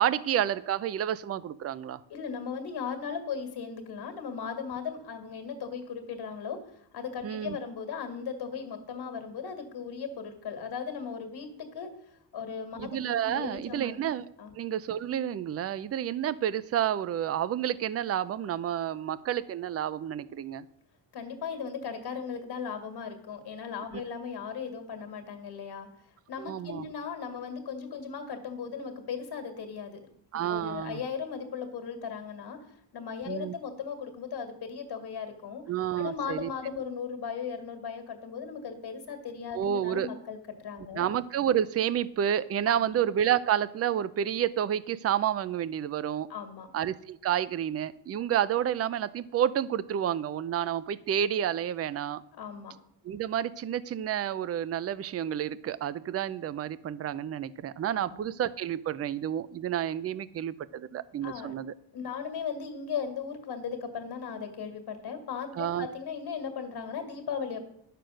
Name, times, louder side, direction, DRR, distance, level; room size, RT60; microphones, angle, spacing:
voice 1, 0.0-2.0 7.2-7.6 12.8-14.2 14.6-20.7 23.9-24.0 26.4-26.9 30.3-31.0 33.3-33.5 35.7-36.5 39.5-40.1 40.9-46.3 46.7-52.2 53.0-61.7 65.6-65.9, right 10 dB, 35° right, 18 dB, 0.4 m, -30 dB
voice 2, 2.1-11.9 12.3-14.0 14.4-14.6 21.1-25.9 26.3-30.0 30.5-35.6 36.0-41.1 42.7-43.0 46.3-46.7 52.4-52.7 57.9-58.3 61.2-61.5 61.9-67.7, left 6 dB, 65° left, 7 dB, 2.0 m, -37 dB
11.0 x 6.8 x 6.3 m, 0.74 s
cardioid pair, 155°, 42 cm